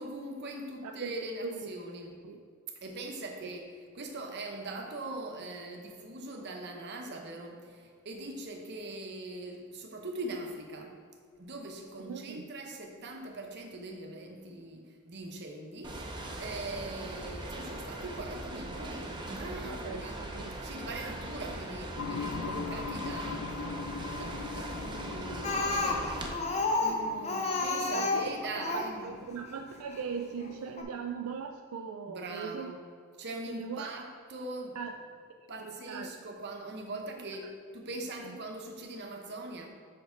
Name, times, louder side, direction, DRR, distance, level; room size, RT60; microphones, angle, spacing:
voice 1, 0.0-2.2 2.8-10.9 11.4-20.2 20.6-23.5 24.1-26.4 26.8-29.1 32.1-32.8 33.2-34.8 35.5-39.7, right 2 dB, 50° right, 2 dB, 0.9 m, -41 dB
voice 2, 0.8-1.1 1.4-1.6 2.2-2.4 12.1-12.4 19.6-20.6 27.9-28.2 28.5-32.7 33.5-33.9 34.8-34.9 35.4-36.1 38.2-38.4, right 6 dB, 75° right, 4 dB, 0.4 m, -39 dB
sound 1, 15.8-26.3, right 1 dB, 20° right, 0.7 m, -40 dB
sound 2, 22.0-31.5, left 5 dB, 75° left, 0.4 m, -42 dB
Speech, 25.4-29.0 29.9-30.0 30.4-30.5 30.8-30.9, left 3 dB, 30° left, 0.7 m, -30 dB
5.7 x 5.5 x 4.4 m, 2.1 s
head